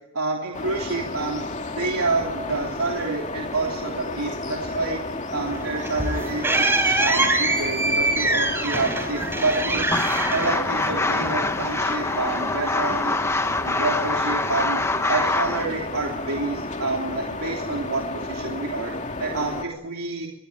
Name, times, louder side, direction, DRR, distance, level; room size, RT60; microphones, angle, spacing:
voice 1, 0.1-1.5 1.7-5.0 5.3-9.9 10.3-14.8 15.1-20.3, right 3 dB, 80° right, 0 dB, 3.2 m, -28 dB
sound 1, 0.5-19.6, left 2 dB, 35° left, 2.4 m, -32 dB
sound 2, 5.5-11.3, right 2 dB, 10° right, 4.3 m, -24 dB
sound 3, 9.9-15.7, left 2 dB, 10° left, 0.8 m, -25 dB
24.5 x 21.5 x 8.6 m, 0.91 s
head